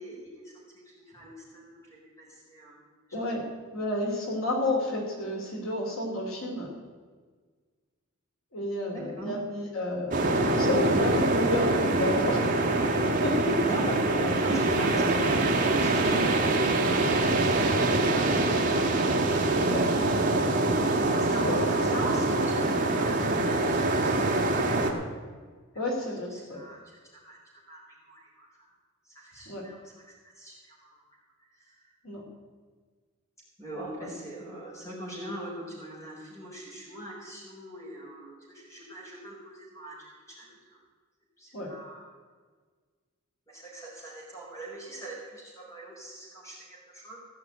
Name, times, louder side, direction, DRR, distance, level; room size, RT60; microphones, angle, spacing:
voice 1, 0.0-2.8 8.9-9.4 13.6-19.1 21.0-24.9 26.3-27.0 27.2-27.4 27.7-28.7 29.0-31.0 31.5-31.9 33.6-40.8 41.4-42.2 43.5-47.2, right 1 dB, 15° left, -4 dB, 4.5 m, -41 dB
voice 2, 3.1-3.4 3.7-6.7 8.5-10.2 10.5-12.8 13.2-13.6 14.9-15.1 19.6-19.8 21.4-21.6 25.7-26.6 29.5-29.6 32.0-32.2 41.5-41.7, left 1 dB, 80° left, -1 dB, 2.7 m, -30 dB
sound 1, 10.1-24.9, right 2 dB, 40° right, 1.5 m, -24 dB
16.0 x 6.0 x 9.0 m, 1.5 s
head